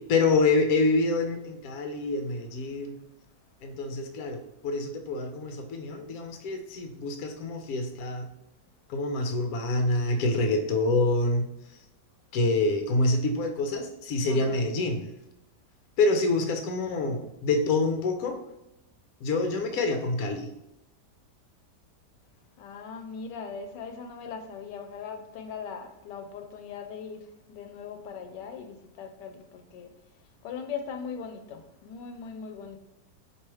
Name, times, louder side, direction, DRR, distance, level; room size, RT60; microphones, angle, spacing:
voice 1, 0.1-2.9 3.6-8.3 8.9-11.4 12.3-15.0 16.0-18.4 19.2-20.5, left 2 dB, 70° left, 1.0 m, -26 dB
voice 2, 14.3-14.6 22.6-29.9 30.4-32.8, left 6 dB, 90° left, 1.2 m, -40 dB
4.6 x 2.9 x 3.0 m
omnidirectional pair, 1.8 m